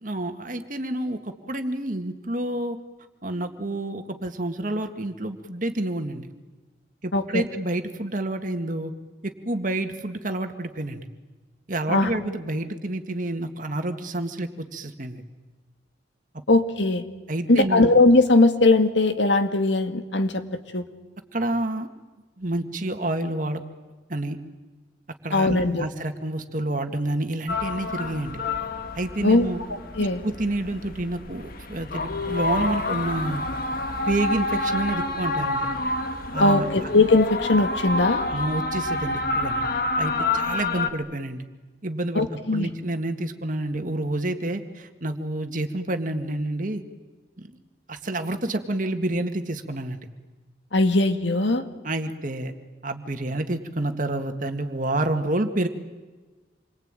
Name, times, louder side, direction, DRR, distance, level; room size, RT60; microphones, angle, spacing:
voice 1, 0.0-2.8 3.2-6.3 7.0-8.9 9.2-11.1 11.7-15.2 17.3-17.9 21.3-21.9 22.4-23.6 24.1-24.4 25.2-28.4 28.9-29.6 30.0-33.5 34.1-35.7 36.3-36.9 38.3-39.6 40.0-41.4 41.8-42.3 42.5-46.8 47.4-47.5 47.9-50.0 51.8-52.5 52.8-55.7, right 1 dB, 45° right, 6 dB, 2.0 m, -29 dB
voice 2, 16.5-17.1 17.5-20.4 20.7-20.8 25.3-25.9 29.2-29.5 30.0-30.2 36.4-38.3 42.2-42.7 50.7-51.6, left 2 dB, 75° left, 7 dB, 2.0 m, -19 dB
sound 1, 27.5-40.9, left 2 dB, 50° left, 1.8 m, -28 dB
28.0 x 23.5 x 9.1 m, 1.3 s
head